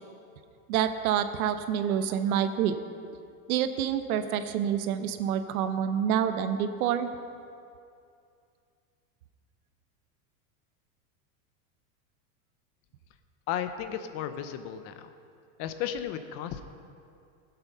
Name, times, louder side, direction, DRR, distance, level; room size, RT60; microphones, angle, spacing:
voice 1, 0.7-2.7 3.5-7.1, right 9 dB, 75° right, 9 dB, 1.0 m, -27 dB
voice 2, 13.5-15.1 15.6-16.6, left 10 dB, 35° left, 10 dB, 0.5 m, -34 dB
15.5 x 8.0 x 5.5 m, 2.5 s
supercardioid pair, 145°, 44 cm